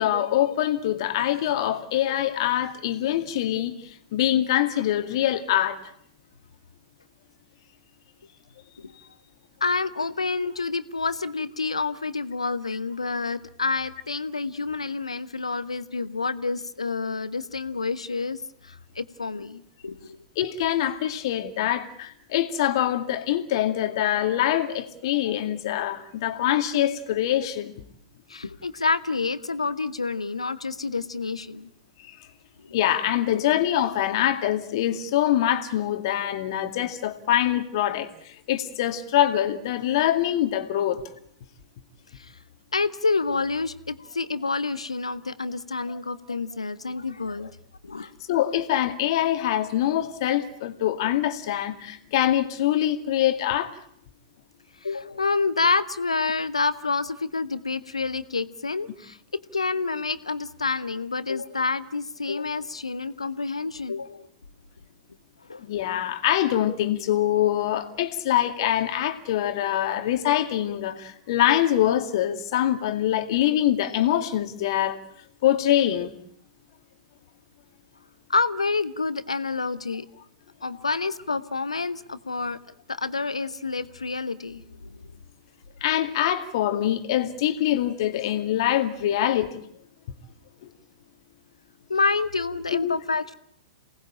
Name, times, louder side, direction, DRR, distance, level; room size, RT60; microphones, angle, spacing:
voice 1, 0.0-5.8 20.4-27.8 32.0-32.2 32.7-41.0 48.3-53.7 65.6-75.0 75.4-76.1 80.7-80.9 85.8-89.6 90.6-90.7 92.8-93.0, left 12 dB, 50° left, 2.2 m, -24 dB
voice 2, 9.6-20.2 28.3-31.7 32.7-32.8 33.3-33.5 42.1-42.3 42.7-47.5 47.8-48.1 54.8-64.3 65.5-65.6 78.3-80.1 80.6-82.6 82.9-85.1 91.9-93.3, left 4 dB, 80° left, 1.1 m, -28 dB
28.0 x 19.0 x 8.9 m
figure-of-eight pair, 105°, 3 cm